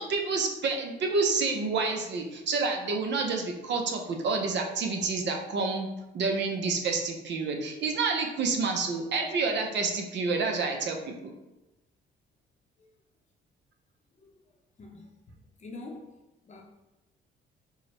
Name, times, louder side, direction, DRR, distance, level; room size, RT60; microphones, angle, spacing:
voice 1, 0.0-5.9 6.1-11.3, right 4 dB, 65° right, 3 dB, 0.6 m, -29 dB
voice 2, 14.8-16.1 16.4-16.6, left 2 dB, 35° left, 1 dB, 0.7 m, -45 dB
4.5 x 2.1 x 3.0 m, 0.96 s
cardioid pair, 90°, 20 cm